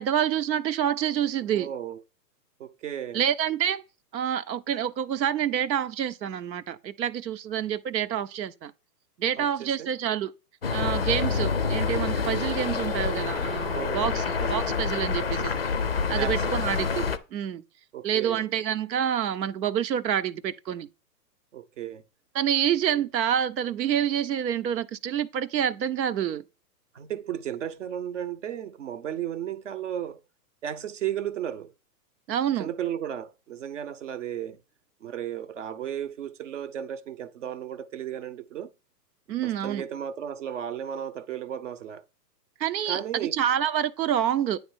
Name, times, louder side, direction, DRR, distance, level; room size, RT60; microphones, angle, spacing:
voice 1, 0.0-1.7 3.1-3.8 4.1-8.7 9.2-10.3 10.7-15.5 16.1-17.6 18.0-20.9 22.3-26.4 32.3-32.7 39.3-39.8 42.6-44.6, right 9 dB, 90° right, 1.0 m, -27 dB
voice 2, 1.4-2.0 2.6-3.2 9.4-9.9 13.7-14.6 15.2-15.5 16.2-16.6 17.9-18.4 21.5-22.0 26.9-30.2 30.6-31.7 32.6-34.6 35.0-38.7 39.4-42.0 42.9-43.4, right 10 dB, 50° right, 0.7 m, -34 dB
sound 1, 10.6-17.2, left 5 dB, 40° left, 0.4 m, -27 dB
9.8 x 3.3 x 6.3 m
hypercardioid pair, 175°, 50 cm